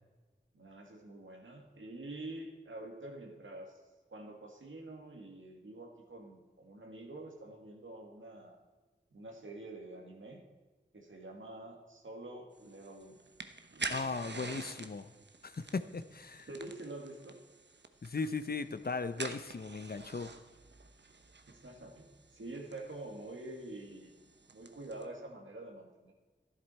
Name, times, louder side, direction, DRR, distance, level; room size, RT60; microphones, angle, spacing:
voice 1, 0.5-3.8 4.1-8.6 9.1-10.4 10.9-13.2 13.7-14.4 16.5-17.4 21.1-24.1 24.5-26.1, right 2 dB, 80° right, 1 dB, 2.0 m, -47 dB
sound 1, 12.6-25.0, right 3 dB, 60° right, 0.9 m, -47 dB
voice 2, 13.9-15.1 15.4-16.5 18.0-20.3, left 4 dB, 50° left, 12 dB, 0.7 m, -37 dB
12.5 x 11.0 x 4.3 m, 1.3 s
wide cardioid pair, 55°, 20 cm